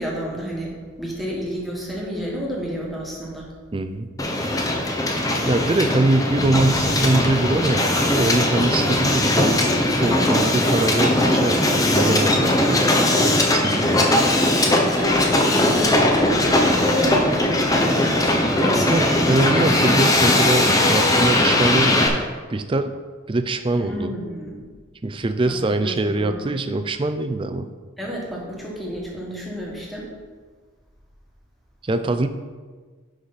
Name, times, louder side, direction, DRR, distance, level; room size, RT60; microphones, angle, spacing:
voice 1, 0.0-3.5 14.6-18.1 18.7-19.0 23.7-24.6 25.4-25.5 25.8-26.5 28.0-30.1, equal, ahead, -4 dB, 1.6 m, -30 dB
voice 2, 3.7-4.1 5.4-9.7 10.0-13.0 13.5-14.1 18.6-22.2 22.5-22.9 23.3-24.1 25.0-27.7 31.8-32.3, right 2 dB, 25° right, 9 dB, 0.4 m, -23 dB
Hiss, 4.2-22.1, left 1 dB, 15° left, 0.7 m, -19 dB
11.0 x 5.0 x 4.1 m, 1.5 s
head